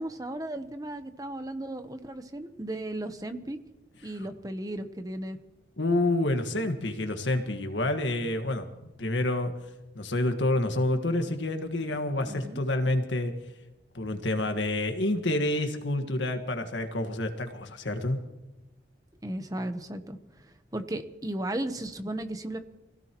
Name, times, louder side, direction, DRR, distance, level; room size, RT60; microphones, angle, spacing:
voice 1, 0.0-3.6 4.0-5.4 12.3-12.6 19.2-22.6, right 1 dB, 20° right, 8 dB, 0.9 m, -35 dB
voice 2, 5.8-8.7 9.0-9.5 9.9-13.3 13.9-18.2, left 1 dB, 85° left, 6 dB, 1.7 m, -28 dB
24.5 x 16.5 x 3.1 m, 1.0 s
head